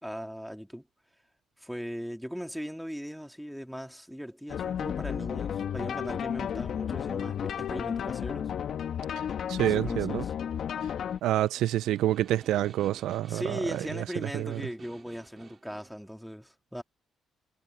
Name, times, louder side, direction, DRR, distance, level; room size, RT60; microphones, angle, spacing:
voice 1, 0.0-0.9 1.6-8.5 9.6-10.3 13.3-16.8, equal, ahead, 2.7 m, -38 dB
sound 1, 4.5-11.2, left 8 dB, 65° left, 1.2 m, -33 dB
voice 2, 9.5-10.2 11.2-14.0 14.3-14.6, right 13 dB, 85° right, 0.5 m, -28 dB
Snare drum, 11.1-16.0, right 5 dB, 40° right, 5.1 m, -53 dB
cardioid pair, 90°, 0 cm